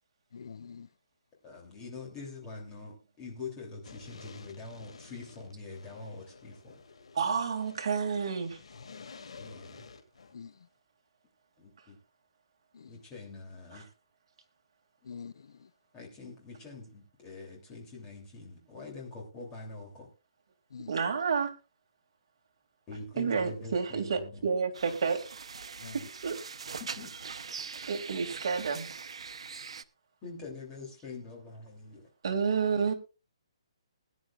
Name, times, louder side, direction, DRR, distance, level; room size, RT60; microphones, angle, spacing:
voice 1, 0.3-0.9 10.3-10.5 12.7-12.9 15.0-15.5 20.7-20.9 25.8-25.9, left 6 dB, 55° left, 0.5 m, -45 dB
voice 2, 1.4-6.8 9.3-9.9 11.6-12.0 12.9-13.9 15.9-20.1 22.9-24.3 26.8-27.1 30.2-32.1, left 3 dB, 15° left, 3.0 m, -44 dB
sound 1, 3.8-10.4, left 4 dB, 75° left, 2.3 m, -51 dB
voice 3, 7.1-8.6 13.7-13.8 20.9-21.5 23.2-25.2 25.9-26.4 27.9-28.9 32.2-32.9, right 5 dB, 50° right, 2.4 m, -30 dB
sound 2, 24.7-29.8, right 5 dB, 70° right, 0.8 m, -42 dB
20.0 x 10.5 x 2.4 m
hypercardioid pair, 175°, 3 cm